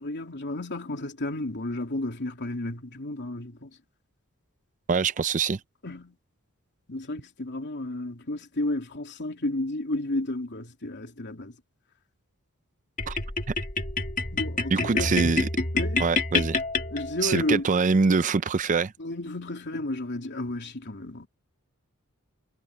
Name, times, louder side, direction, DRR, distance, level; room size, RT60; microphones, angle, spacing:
voice 1, 0.0-3.7 5.8-6.1 6.9-11.5 14.3-15.2 15.7-16.0 16.9-17.6 19.0-21.3, left 1 dB, 50° left, 3.3 m, -32 dB
voice 2, 4.9-5.6 13.1-13.2 13.5-13.6 14.7-15.5 16.0-16.6 17.2-18.9, right 4 dB, 35° right, 0.5 m, -24 dB
sound 1, 13.0-17.5, left 3 dB, 35° left, 1.8 m, -28 dB
head